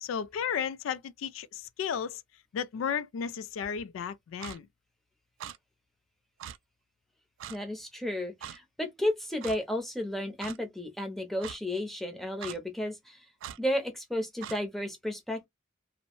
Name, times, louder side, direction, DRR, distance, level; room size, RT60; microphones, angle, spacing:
voice 1, 0.0-2.2 2.5-4.7, left 7 dB, 90° left, 0.3 m, -34 dB
Clock, 4.4-4.6 5.4-5.6 6.4-6.6 7.4-7.6 8.4-8.6 9.4-9.6 10.4-10.6 11.4-11.6 12.4-12.6 13.4-13.6 14.4-14.6, right 10 dB, 75° right, 0.3 m, -41 dB
voice 2, 7.5-13.2 13.6-15.5, left 1 dB, ahead, 0.6 m, -33 dB
2.6 x 2.0 x 2.9 m
head